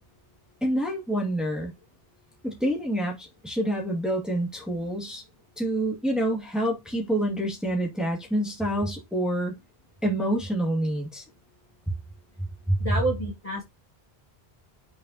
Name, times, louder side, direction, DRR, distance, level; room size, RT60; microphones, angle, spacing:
voice 1, 0.6-1.7 2.4-5.2 5.6-9.5 10.0-11.2 12.7-12.9, right 1 dB, ahead, 2.0 m, -27 dB
voice 2, 12.8-13.6, right 2 dB, 35° left, 1.9 m, -28 dB
7.0 x 5.1 x 2.8 m
omnidirectional pair, 1.1 m